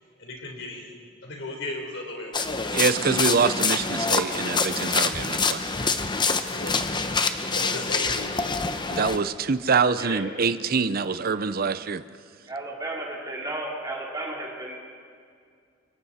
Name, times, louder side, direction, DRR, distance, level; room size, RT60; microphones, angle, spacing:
voice 1, 0.2-0.9 1.2-2.6 5.2-5.3 6.5-6.8 7.5-8.6 10.2-10.3, left 2 dB, 70° left, 1 dB, 4.1 m, -36 dB
sound 1, 2.3-9.2, left 4 dB, 25° left, 0.9 m, -26 dB
voice 2, 2.7-5.6 8.9-12.0, right 5 dB, 50° right, 13 dB, 0.6 m, -25 dB
voice 3, 12.5-14.8, right 2 dB, 20° right, -3 dB, 3.9 m, -33 dB
29.5 x 24.0 x 4.3 m, 2.2 s
head